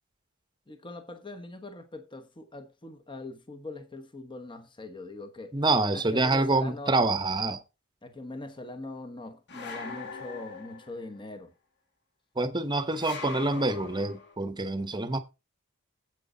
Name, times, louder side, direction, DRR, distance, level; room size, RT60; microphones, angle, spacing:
voice 1, 0.7-5.6 5.9-7.2 8.0-11.5, left 2 dB, 20° left, 1.1 m, -42 dB
voice 2, 5.5-7.6 12.4-15.2, right 2 dB, 20° right, 1.0 m, -26 dB
sound 1, 9.5-11.1 12.9-14.3, left 4 dB, 55° left, 2.0 m, -41 dB
9.6 x 8.2 x 3.9 m
head